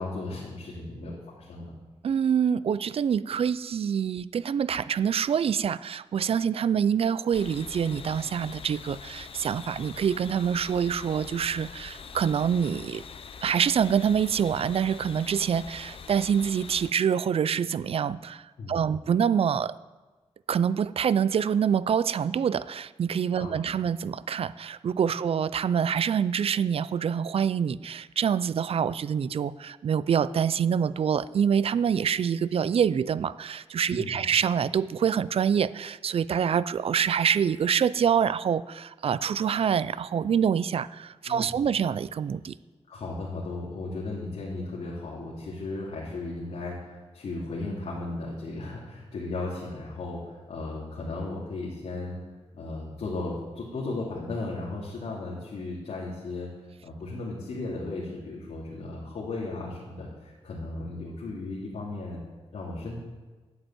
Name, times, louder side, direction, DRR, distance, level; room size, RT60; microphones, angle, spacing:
voice 1, 0.0-1.7 18.6-18.9 23.4-23.5 33.9-34.3 41.3-41.6 42.9-52.2 52.5-56.5 56.8-62.2 62.5-63.0, left 2 dB, 80° left, -5 dB, 2.9 m, -35 dB
voice 2, 2.0-13.0 13.4-19.8 20.5-42.6, right 7 dB, 60° right, 17 dB, 0.4 m, -26 dB
sound 1, 7.3-16.9, left 6 dB, 55° left, 0.7 m, -44 dB
11.5 x 8.1 x 8.9 m, 1.3 s
wide cardioid pair, 140°, 11 cm